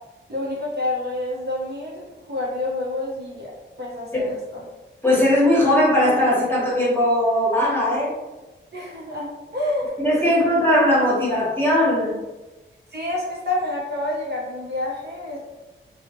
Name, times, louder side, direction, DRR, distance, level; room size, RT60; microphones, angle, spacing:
voice 1, 0.3-3.5 3.8-4.6 8.7-10.0 12.9-15.4, left 2 dB, 55° right, -5 dB, 0.7 m, -28 dB
voice 2, 5.0-8.1 10.0-12.2, left 1 dB, 10° left, -7 dB, 1.0 m, -19 dB
2.3 x 2.0 x 2.7 m, 1.1 s
wide cardioid pair, 75°, 21 cm